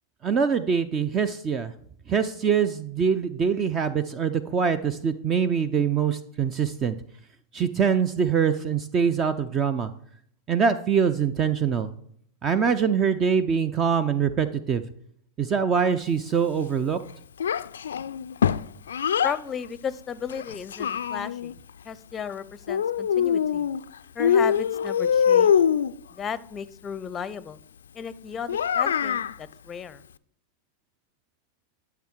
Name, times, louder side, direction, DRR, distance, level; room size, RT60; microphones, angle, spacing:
voice 1, 0.2-1.7 2.1-7.0 7.5-9.9 10.5-11.9 12.4-14.8 15.4-17.0, right 6 dB, 30° right, 13 dB, 0.6 m, -24 dB
Child speech kid speaking, 17.4-19.4 20.3-21.5 22.7-23.8 24.2-25.9 28.5-29.3, left 8 dB, 75° left, 0.3 m, -23 dB
voice 2, 19.2-21.6 21.8-23.7 24.1-25.5 26.1-27.6 27.9-30.0, left 7 dB, 25° left, 18 dB, 0.6 m, -35 dB
11.5 x 6.1 x 4.5 m, 0.65 s
figure-of-eight pair, 95°, 0 cm